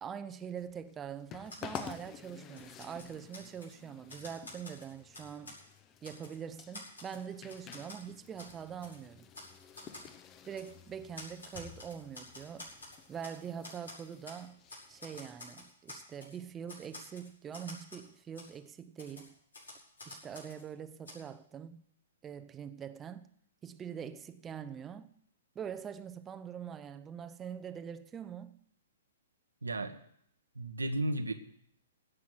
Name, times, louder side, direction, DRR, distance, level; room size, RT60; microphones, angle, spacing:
voice 1, 0.0-5.6 6.0-9.3 10.5-12.7 13.1-14.6 14.9-19.4 20.1-21.8 22.2-23.3 23.6-25.1 25.5-28.6, right 8 dB, 20° right, 0.7 m, -44 dB
sound 1, 0.6-15.7, left 8 dB, 25° left, 0.8 m, -51 dB
Typewriter, 1.4-2.0 2.4-3.7 4.1-5.6 6.0-6.4 6.7-8.0 8.4-8.5 8.8-9.0 9.3-9.5 9.7-10.1 10.6-10.7 11.1-13.4 13.6-14.4 14.7-16.3 16.7-18.1 18.3-18.5 19.0-20.6 21.0-21.1, left 2 dB, 80° left, 5.5 m, -49 dB
voice 2, 29.6-30.0 30.5-31.3, right 1 dB, 85° right, 1.3 m, -33 dB
16.5 x 6.1 x 9.7 m
figure-of-eight pair, 115°, 0 cm